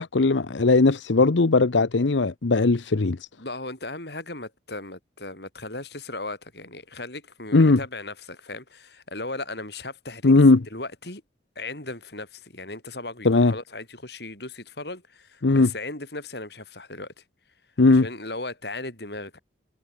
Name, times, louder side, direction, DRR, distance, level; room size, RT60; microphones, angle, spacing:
voice 1, 0.0-3.2 7.5-7.8 10.2-10.6 13.2-13.5 15.4-15.7 17.8-18.1, left 3 dB, 85° left, 0.8 m, -18 dB
voice 2, 3.4-11.2 11.6-17.1 17.9-19.4, left 2 dB, 60° left, 7.4 m, -37 dB
head